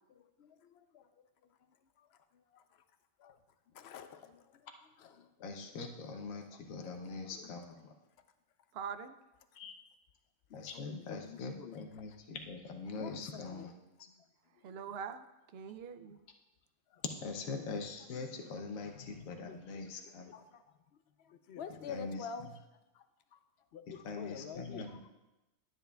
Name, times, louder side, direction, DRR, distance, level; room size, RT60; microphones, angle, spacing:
voice 1, 0.1-2.9 3.2-3.4 3.7-4.7 5.0-5.8 6.5-7.7 8.2-8.3 10.5-12.1 13.0-13.7 14.1-14.3 14.5-15.0 16.1-16.2 16.9-17.3 18.8-25.1, left 7 dB, 65° left, 10 dB, 0.7 m, -50 dB
voice 2, 5.4-7.9 9.5-9.7 10.5-13.7 17.2-20.3 21.9-22.2 24.0-25.0, left 4 dB, 85° left, 4 dB, 1.2 m, -43 dB
voice 3, 8.7-9.2 14.6-15.2 15.5-16.2, right 7 dB, 65° right, 11 dB, 0.6 m, -43 dB
12.5 x 9.0 x 2.3 m, 1.0 s
omnidirectional pair, 1.4 m